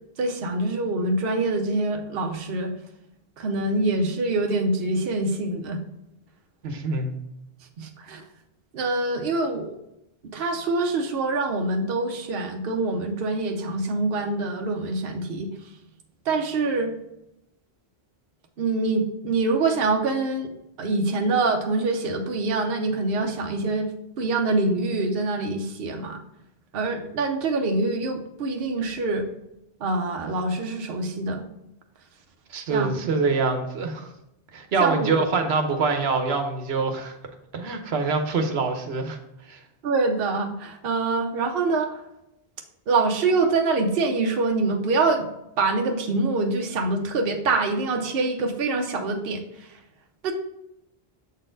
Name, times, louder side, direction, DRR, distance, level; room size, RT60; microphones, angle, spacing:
voice 1, 0.2-2.7 3.4-5.8 7.8-8.2 8.7-9.8 10.3-15.5 16.3-17.0 18.6-20.5 20.8-23.9 24.2-26.2 26.7-29.3 29.8-31.4 32.7-33.0 34.8-35.1 39.8-42.0 42.9-45.3 45.6-49.8 50.2-50.3, right 3 dB, 70° right, 3 dB, 0.9 m, -25 dB
voice 2, 6.6-7.1 32.5-34.1 34.5-37.2 37.5-39.2 39.5-39.6, right 4 dB, 85° right, 5 dB, 1.1 m, -25 dB
7.2 x 4.1 x 3.8 m, 0.85 s
omnidirectional pair, 1.0 m